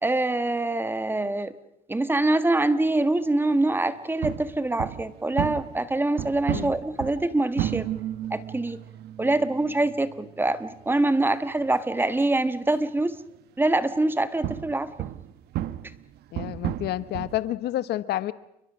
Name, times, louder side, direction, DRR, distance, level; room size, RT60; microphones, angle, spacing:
voice 1, 0.0-1.5 1.9-7.9 8.3-8.8 9.2-13.2 13.6-14.9, right 2 dB, 10° right, 12 dB, 1.4 m, -24 dB
sound 1, 4.2-13.2 13.9-17.5, right 13 dB, 75° right, 1.0 m, -34 dB
voice 2, 16.3-18.3, left 14 dB, 75° left, 15 dB, 1.1 m, -29 dB
29.5 x 22.5 x 6.2 m, 0.83 s
cardioid pair, 110°, 17 cm